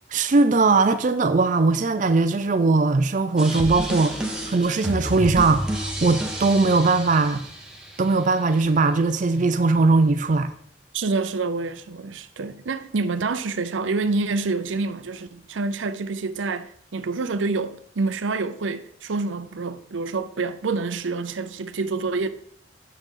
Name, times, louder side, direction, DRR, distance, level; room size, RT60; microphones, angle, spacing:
voice 1, 0.1-7.4 8.0-10.5, right 3 dB, 40° right, 0.5 m, -20 dB
sound 1, 3.4-8.3, right 1 dB, 5° right, 1.2 m, -30 dB
voice 2, 10.9-22.3, right 3 dB, 90° right, 0.6 m, -27 dB
9.1 x 6.5 x 3.8 m
head